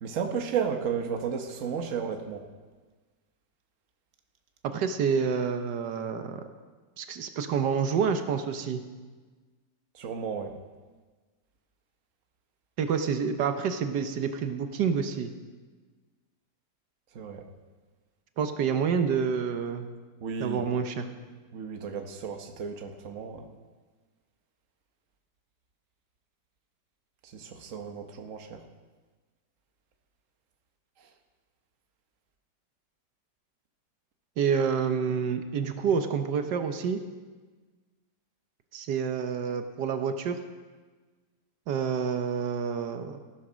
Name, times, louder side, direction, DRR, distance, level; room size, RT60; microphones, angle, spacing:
voice 1, 0.0-2.5 9.9-10.6 17.1-17.4 20.2-20.7 21.5-23.5 27.3-28.6, right 6 dB, 50° right, 5 dB, 1.4 m, -33 dB
voice 2, 4.6-6.4 7.0-8.8 12.8-15.3 18.4-19.9 20.4-21.1 34.4-37.0 38.7-40.4 41.7-43.2, right 6 dB, 85° right, 7 dB, 1.5 m, -28 dB
15.0 x 10.0 x 6.2 m, 1.4 s
omnidirectional pair, 1.8 m